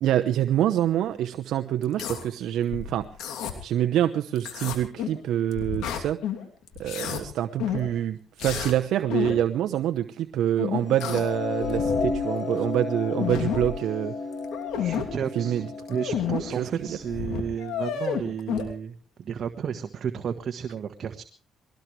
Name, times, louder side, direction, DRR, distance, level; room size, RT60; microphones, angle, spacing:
voice 1, 0.0-3.1 3.6-6.2 6.8-14.1 15.3-15.7 16.5-17.0, right 11 dB, 80° right, 8 dB, 0.9 m, -26 dB
sound 1, 1.8-2.2 2.7-3.5 4.4-5.2 5.5-6.4 6.7-7.2 7.6-7.9 8.4-8.8 9.1-9.4 10.6-11.3 11.6-12.2 12.6-12.7 13.0-13.7 14.3-15.1 15.8-16.4 16.8-16.9 17.1-18.6, left 8 dB, 90° left, 3.0 m, -30 dB
sound 2, 11.0-17.2, left 4 dB, 40° left, 6.4 m, -32 dB
voice 2, 14.8-15.6 15.9-21.2, right 7 dB, 55° right, 6 dB, 1.4 m, -32 dB
22.5 x 18.5 x 3.3 m, 0.37 s
cardioid pair, 90°, 0 cm